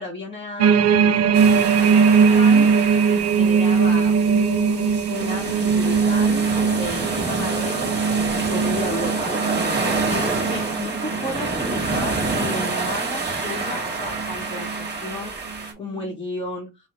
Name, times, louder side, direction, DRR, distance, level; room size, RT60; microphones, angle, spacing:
voice 1, 0.0-7.9 8.3-9.6 10.1-16.7, left 2 dB, 15° left, -2 dB, 0.9 m, -33 dB
sound 1, 0.6-12.9 13.4-13.7 14.1-14.9 15.5-15.6, right 6 dB, 60° right, 0.4 m, -20 dB
sound 2, 1.3-15.7, right 3 dB, 35° right, 1.5 m, -28 dB
3.8 x 2.1 x 4.4 m, 0.24 s
cardioid pair, 90°, 30 cm